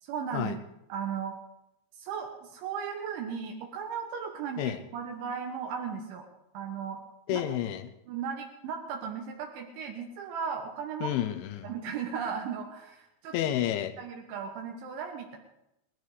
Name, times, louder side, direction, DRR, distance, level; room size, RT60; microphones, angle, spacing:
voice 1, 0.0-0.6 0.9-1.4 2.0-6.3 6.5-7.0 7.3-7.5 8.1-11.2 11.6-13.5 14.0-15.4, right 6 dB, 80° right, 2 dB, 3.7 m, -36 dB
voice 2, 7.3-7.9 11.0-11.7 13.3-13.9, left 11 dB, 85° left, 10 dB, 3.3 m, -30 dB
19.5 x 13.0 x 4.8 m, 0.85 s
omnidirectional pair, 5.4 m